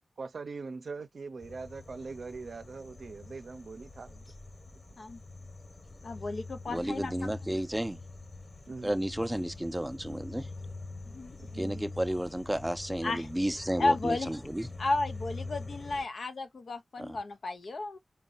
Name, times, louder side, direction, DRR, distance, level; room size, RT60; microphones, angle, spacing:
voice 1, 0.2-4.2 4.7-4.8 8.7-8.9 11.4-11.9, right 4 dB, 80° right, 0.5 m, -42 dB
sound 1, 1.4-16.0, left 3 dB, 45° left, 1.2 m, -45 dB
voice 2, 6.0-7.3 11.1-11.4 13.0-13.3 13.8-14.3 14.8-18.0, left 2 dB, 80° left, 0.5 m, -33 dB
voice 3, 6.7-8.0 8.8-10.5 11.6-14.7 17.0-17.2, right 1 dB, 10° right, 0.4 m, -32 dB
4.1 x 2.2 x 3.7 m
cardioid pair, 45°, 0 cm